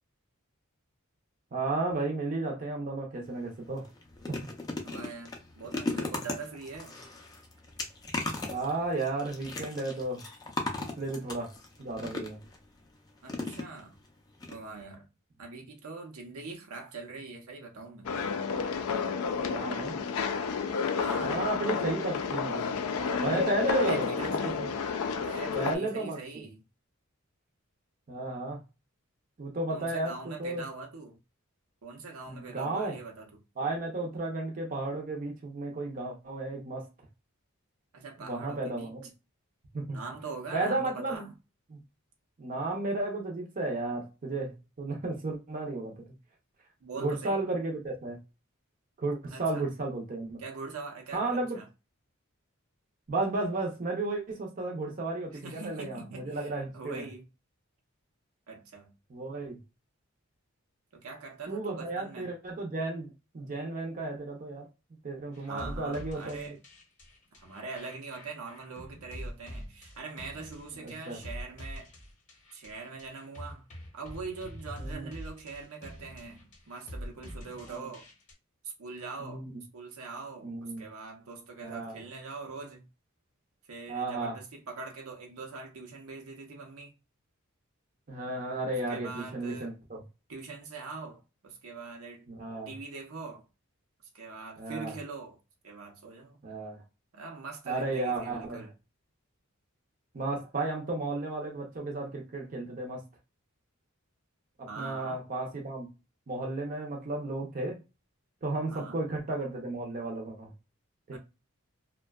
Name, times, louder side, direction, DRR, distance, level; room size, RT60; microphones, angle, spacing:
voice 1, 1.5-3.9 8.5-10.2 11.0-11.5 11.8-12.4 19.4-20.0 21.2-22.6 23.2-24.7 25.6-26.4 28.1-28.6 29.4-30.6 32.3-33.0 33.6-36.9 38.2-39.1 39.7-40.0 40.5-41.3 41.7-41.8 42.4-46.0 46.9-48.2 49.0-50.4 51.1-51.6 53.1-57.0 59.1-59.6 61.5-64.7 65.0-66.6 70.8-71.2 74.8-75.1 77.7-77.9 79.2-79.4 80.4-80.8 81.6-81.9 83.9-84.4 88.1-90.0 92.3-92.7 94.6-94.9 96.4-96.8 97.7-98.7 100.1-103.0 104.6-105.9 106.3-107.8 108.4-110.5 111.1-111.2, right 2 dB, 40° right, 0.5 m, -33 dB
sound 1, 3.2-3.4 3.8-12.6 13.3-14.1 14.4-14.5 14.8-14.9, left 2 dB, 20° left, 0.4 m, -37 dB
voice 2, 4.8-7.0 13.2-14.0 14.5-15.0 15.4-18.2 21.0-21.3 23.7-24.8 25.2-26.6 29.7-31.2 31.8-33.4 37.9-38.9 39.9-41.3 46.8-47.4 49.3-49.7 50.4-51.7 55.4-57.2 58.5-58.9 60.9-62.3 65.4-66.6 67.4-71.9 72.5-73.6 73.9-78.1 78.6-79.5 79.7-82.8 83.7-86.9 88.9-89.7 90.3-92.3 92.7-93.4 94.1-95.4 95.6-96.4 97.1-98.7 104.7-105.2 108.7-109.0 111.1-111.2, right 4 dB, 80° right, 0.7 m, -43 dB
sound 2, 18.0-25.8, left 5 dB, 80° left, 0.4 m, -30 dB
sound 3, 65.3-78.3, equal, 35° left, 0.7 m, -45 dB
2.6 x 2.1 x 2.2 m
head